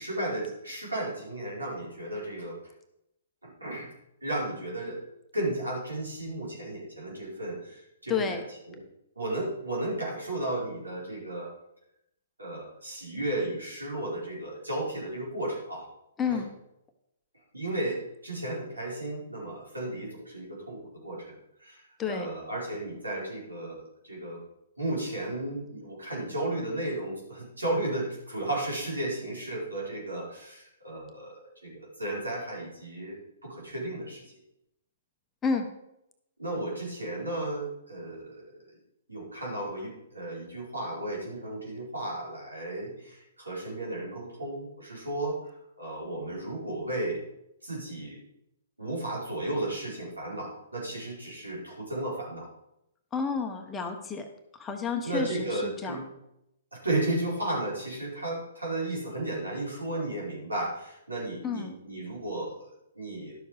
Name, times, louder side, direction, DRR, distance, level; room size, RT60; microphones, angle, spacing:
voice 1, 0.0-2.6 3.4-3.9 4.2-5.0 5.3-8.4 8.7-8.8 9.1-11.5 12.4-15.9 16.2-16.4 17.5-24.4 24.8-34.3 36.4-38.6 39.1-47.2 47.6-48.2 48.8-52.5 55.0-56.0 56.7-63.4, right 1 dB, 85° right, -4 dB, 4.7 m, -34 dB
voice 2, 8.1-8.4 16.2-16.5 22.0-22.3 35.4-35.7 53.1-54.3 54.6-56.0 61.4-61.7, left 5 dB, 15° left, 5 dB, 1.2 m, -30 dB
12.0 x 7.1 x 4.9 m, 0.83 s
figure-of-eight pair, 120°, 0 cm